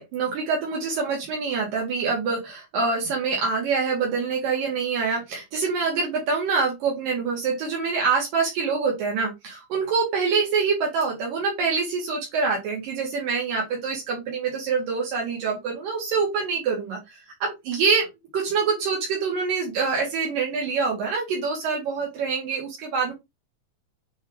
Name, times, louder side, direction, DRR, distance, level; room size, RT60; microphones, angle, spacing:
voice 1, 0.0-18.1 18.3-23.1, right 5 dB, 75° right, -2 dB, 3.6 m, -25 dB
8.0 x 3.8 x 3.3 m, 0.21 s
omnidirectional pair, 4.0 m